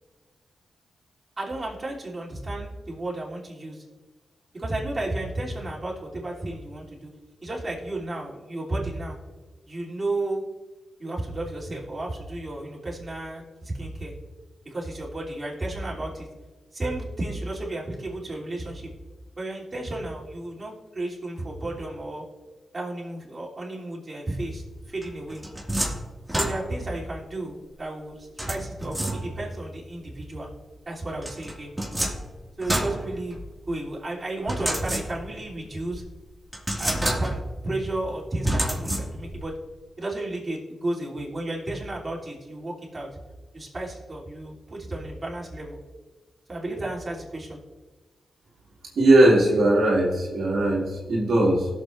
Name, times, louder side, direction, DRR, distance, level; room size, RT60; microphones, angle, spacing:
voice 1, 1.4-3.8 4.5-7.1 7.4-9.2 9.7-10.4 11.0-14.1 14.6-16.3 16.7-18.9 19.4-22.2 22.7-25.4 26.3-30.5 30.8-31.7 32.6-33.4 33.7-36.0 36.8-39.5 40.0-43.1 43.5-45.8 46.5-47.6, right 2 dB, 35° right, -5 dB, 3.2 m, -33 dB
sound 1, 25.0-27.0 28.4-29.6 31.2-33.7 34.5-35.5 35.9-36.0 36.5-37.6 38.4-39.4, right 1 dB, 10° right, 2.1 m, -29 dB
voice 2, 49.0-51.7, right 1 dB, 80° right, -4 dB, 2.2 m, -19 dB
19.0 x 7.0 x 2.6 m, 1.3 s
cardioid pair, 55°, 0 cm